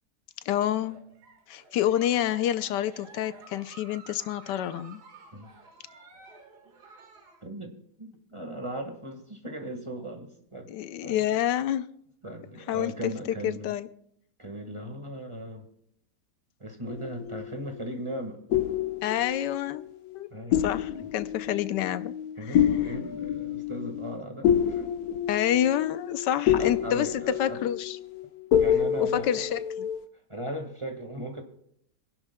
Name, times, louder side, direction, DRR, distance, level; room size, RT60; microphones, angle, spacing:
voice 1, 0.5-1.0 1.5-5.0 10.7-11.9 12.7-12.9 13.4-13.9 19.0-19.8 20.1-20.3 20.6-22.2 25.3-28.0 28.9-29.9, left 11 dB, 85° left, 1.3 m, -28 dB
Giggle, 0.7-7.4, right 4 dB, 70° right, 2.3 m, -52 dB
voice 2, 7.4-7.7 8.0-11.2 12.2-13.7 14.4-15.7 16.6-18.4 20.3-20.7 21.0-21.1 21.5-21.7 22.4-24.9 26.6-27.7 28.6-29.5 30.3-31.4, right 1 dB, 20° right, 1.4 m, -38 dB
sound 1, 16.9-17.9 18.5-20.2 20.5-30.0, left 9 dB, 65° left, 1.3 m, -28 dB
26.0 x 11.0 x 2.2 m
omnidirectional pair, 1.8 m